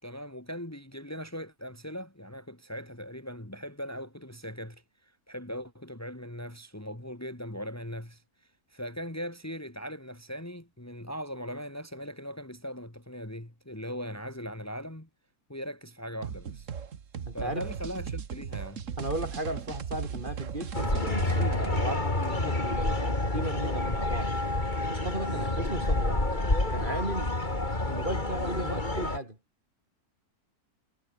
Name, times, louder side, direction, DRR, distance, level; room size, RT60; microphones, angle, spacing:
voice 1, 0.0-8.2 8.7-15.1 15.5-16.7 17.3-18.8 25.3-25.5, equal, 10° left, 2.6 m, -39 dB
sound 1, 16.2-21.8, right 7 dB, 55° right, 1.6 m, -37 dB
voice 2, 17.2-17.6 19.0-24.3 24.9-26.2 26.7-27.4 27.8-29.4, right 1 dB, 30° right, 4.7 m, -35 dB
sound 2, 20.7-29.2, left 2 dB, 30° left, 3.8 m, -28 dB
omnidirectional pair, 1.6 m